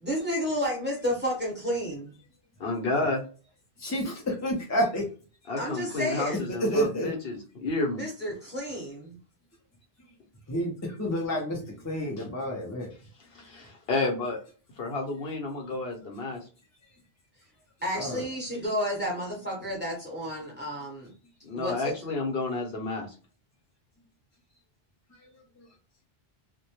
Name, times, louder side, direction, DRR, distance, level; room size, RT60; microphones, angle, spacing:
voice 1, 0.0-2.1 5.6-6.5 8.0-9.2 17.8-21.1 21.5-21.8, equal, 10° right, -3 dB, 0.9 m, -31 dB
voice 2, 2.6-3.2 5.5-8.0 13.3-14.4 14.8-16.4 21.4-23.1, left 3 dB, 70° left, 1 dB, 0.9 m, -30 dB
voice 3, 3.8-5.0 6.6-7.1 10.5-12.9 17.9-18.2 25.1-25.2, equal, 30° left, -1 dB, 0.3 m, -29 dB
2.1 x 2.1 x 2.9 m, 0.37 s
omnidirectional pair, 1.1 m